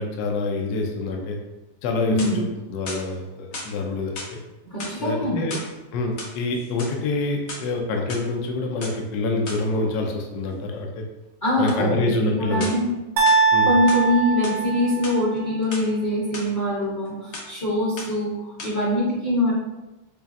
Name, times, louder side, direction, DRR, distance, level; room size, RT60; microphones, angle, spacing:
voice 1, 0.0-1.4 1.8-2.4 2.7-4.4 5.0-5.6 5.9-11.0 11.6-12.7 13.5-13.7, left 2 dB, 70° left, 2 dB, 0.9 m, -26 dB
sound 1, 1.9-2.5 2.9-3.7 4.1-4.4 4.7-5.7 6.1-7.0 7.3-8.2 8.8-9.0 9.5-9.7 11.7-11.8 12.6-12.9 13.3-14.1 14.4-14.6 14.9-15.9 16.3-16.5 16.8-17.1 17.3-17.6 18.0-18.3 18.6-18.7, left 2 dB, 90° left, 0.6 m, -36 dB
voice 2, 2.1-2.5 4.7-5.5 11.4-12.9 13.6-19.5, left 1 dB, 45° left, -7 dB, 0.6 m, -23 dB
sound 2, 13.2-15.3, right 5 dB, 85° right, 0.8 m, -21 dB
4.9 x 2.4 x 2.5 m, 1.0 s
omnidirectional pair, 2.1 m